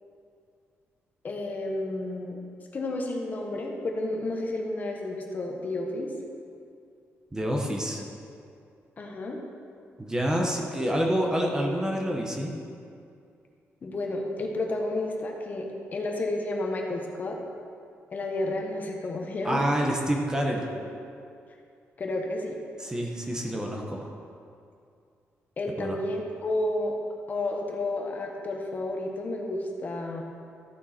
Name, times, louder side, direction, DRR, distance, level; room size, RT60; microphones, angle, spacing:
voice 1, 1.2-2.4 2.7-6.1 9.0-9.4 13.8-17.4 18.1-19.6 20.7-20.8 22.0-22.6 25.6-27.0 27.3-30.2, left 2 dB, 35° left, 1 dB, 1.2 m, -31 dB
voice 2, 7.3-8.0 10.0-12.5 19.4-20.6 22.8-24.1 25.8-25.9, equal, 15° right, 0 dB, 1.1 m, -27 dB
13.5 x 7.1 x 4.4 m, 2.4 s
cardioid pair, 140°, 5 cm